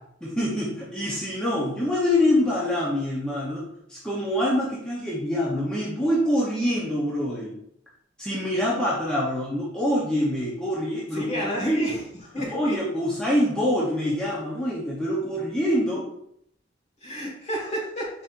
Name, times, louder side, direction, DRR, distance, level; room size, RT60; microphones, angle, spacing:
voice 1, 0.2-7.6 8.2-11.9 12.5-16.1, left 1 dB, 5° left, -7 dB, 0.7 m, -25 dB
voice 2, 11.1-12.8 17.0-18.1, right 1 dB, 35° left, -3 dB, 1.4 m, -29 dB
4.0 x 4.0 x 2.5 m, 0.72 s
head